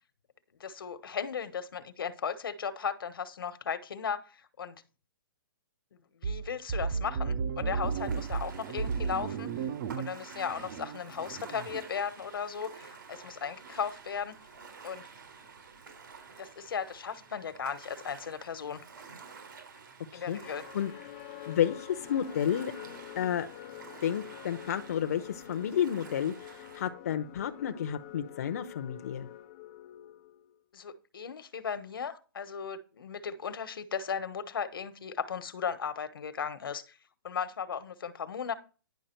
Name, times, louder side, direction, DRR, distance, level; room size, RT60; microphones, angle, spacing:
voice 1, 0.6-4.8 6.2-9.7 10.0-14.3 14.8-15.0 16.4-18.8 20.1-20.7 30.7-36.9 37.2-38.5, left 7 dB, 75° left, 1.2 m, -36 dB
sound 1, 6.2-11.9, right 5 dB, 30° right, 0.6 m, -34 dB
Ocean, 7.8-26.9, right 5 dB, 65° right, 3.8 m, -50 dB
voice 2, 20.1-20.9 21.5-22.7 23.2-23.5 24.0-29.3, left 9 dB, 45° left, 0.8 m, -31 dB
sound 2, 20.4-30.6, left 14 dB, 20° left, 0.4 m, -47 dB
10.5 x 6.0 x 4.4 m
hypercardioid pair, 170°, 12 cm